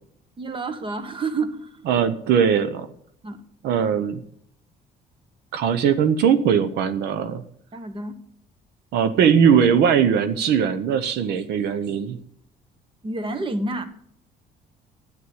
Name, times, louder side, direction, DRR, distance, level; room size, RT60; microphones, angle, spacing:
voice 1, 0.4-1.8 3.2-3.4 7.7-8.2 13.0-13.8, right 3 dB, 30° right, 10 dB, 1.4 m, -29 dB
voice 2, 1.9-2.9 3.6-4.2 5.5-7.4 8.9-12.2, right 7 dB, 80° right, 10 dB, 0.9 m, -20 dB
9.6 x 8.6 x 8.0 m, 0.67 s
cardioid pair, 110°, 17 cm